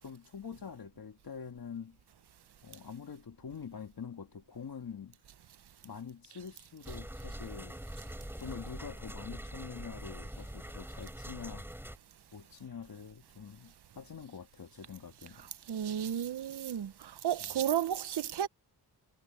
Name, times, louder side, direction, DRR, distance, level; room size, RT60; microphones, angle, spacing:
voice 1, 0.0-2.0 2.6-5.1 5.8-7.8 8.4-11.7 12.3-15.5 17.4-17.5, left 6 dB, 55° left, 2.0 m, -45 dB
sound 1, 6.8-12.0, right 1 dB, 5° right, 5.0 m, -44 dB
voice 2, 15.7-18.5, right 10 dB, 65° right, 0.9 m, -33 dB
cardioid pair, 70°, 42 cm